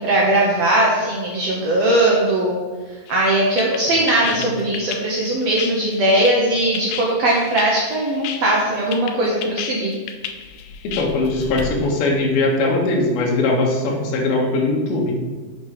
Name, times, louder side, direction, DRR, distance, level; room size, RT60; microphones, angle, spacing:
voice 1, 0.0-2.6 3.1-9.9, right 1 dB, 85° right, -4 dB, 1.4 m, -19 dB
sound 1, 3.1-11.6, left 8 dB, 90° left, 1.8 m, -32 dB
voice 2, 10.8-15.1, left 2 dB, 70° left, -1 dB, 3.2 m, -20 dB
7.3 x 5.9 x 4.9 m, 1.4 s
omnidirectional pair, 4.6 m